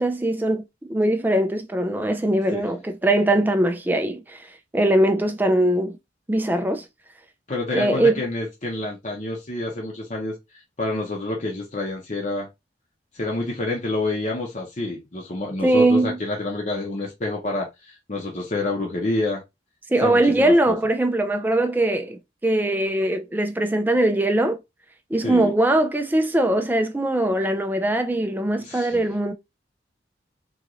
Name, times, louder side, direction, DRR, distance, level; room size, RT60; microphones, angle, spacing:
voice 1, 0.0-4.5 4.7-6.0 6.3-6.8 7.7-8.1 15.6-16.2 19.9-24.6 25.1-29.3, right 1 dB, 10° right, 0.4 m, -21 dB
voice 2, 7.5-10.3 10.8-12.5 13.1-19.4 20.0-20.7 25.2-25.5 28.6-29.0, left 2 dB, 40° left, 0.9 m, -28 dB
3.8 x 2.5 x 3.0 m
head